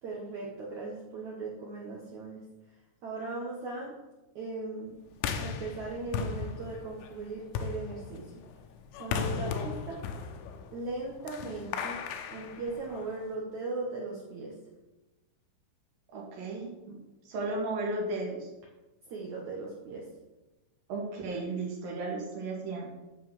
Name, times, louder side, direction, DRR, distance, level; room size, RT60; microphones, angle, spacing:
voice 1, 0.0-2.4 3.0-4.0 4.3-5.0 5.4-8.3 9.0-10.0 10.7-12.0 12.3-14.5 19.1-20.0, right 3 dB, 85° right, -4 dB, 1.6 m, -38 dB
sound 1, 5.2-13.3, left 6 dB, 80° left, 3.3 m, -37 dB
voice 2, 9.1-9.4 16.1-17.0 17.2-18.5 20.9-22.9, right 2 dB, 50° right, -3 dB, 3.4 m, -35 dB
11.0 x 5.6 x 7.5 m, 1.1 s
omnidirectional pair, 5.8 m